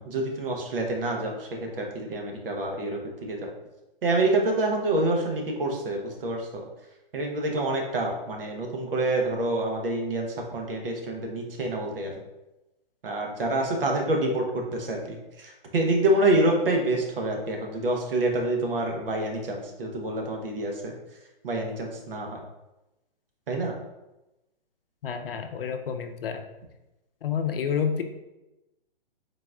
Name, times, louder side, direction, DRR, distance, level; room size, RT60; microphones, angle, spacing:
voice 1, 0.0-1.5 1.8-3.5 4.0-6.6 7.1-12.2 13.0-20.9 21.4-22.4 23.5-23.7, right 2 dB, 70° right, 2 dB, 1.0 m, -27 dB
voice 2, 25.0-26.4 27.2-28.0, left 7 dB, 75° left, 7 dB, 0.5 m, -29 dB
3.9 x 2.4 x 3.3 m, 0.98 s
hypercardioid pair, 160°, 29 cm